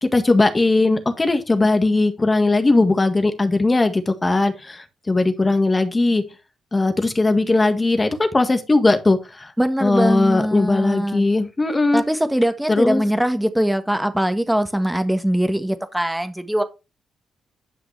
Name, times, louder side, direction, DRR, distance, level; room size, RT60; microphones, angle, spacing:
voice 1, 0.0-6.2 6.7-9.5 9.8-12.0 12.7-13.0, left 2 dB, 25° left, 1.7 m, -19 dB
voice 2, 9.6-11.2 11.9-16.6, equal, 5° right, 1.5 m, -21 dB
10.5 x 6.0 x 3.4 m
supercardioid pair, 60°, 0 cm